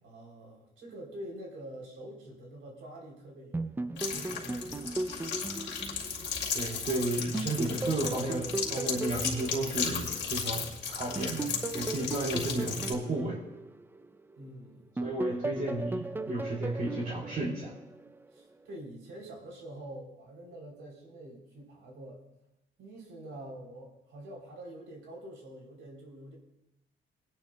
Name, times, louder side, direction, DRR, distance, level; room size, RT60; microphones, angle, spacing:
voice 1, 0.0-5.0 14.4-14.9 18.3-22.2 22.8-26.4, right 1 dB, 80° right, 0 dB, 3.3 m, -46 dB
sound 1, 3.5-6.9 7.3-10.6 11.2-14.5 15.0-18.2, right 2 dB, 10° right, 0.4 m, -37 dB
sound 2, 4.0-12.9, left 6 dB, 65° left, 2.2 m, -35 dB
voice 2, 6.5-13.4 15.0-17.7, right 2 dB, 45° right, -4 dB, 2.7 m, -33 dB
22.0 x 10.0 x 2.2 m, 0.91 s
cardioid pair, 90°, 20 cm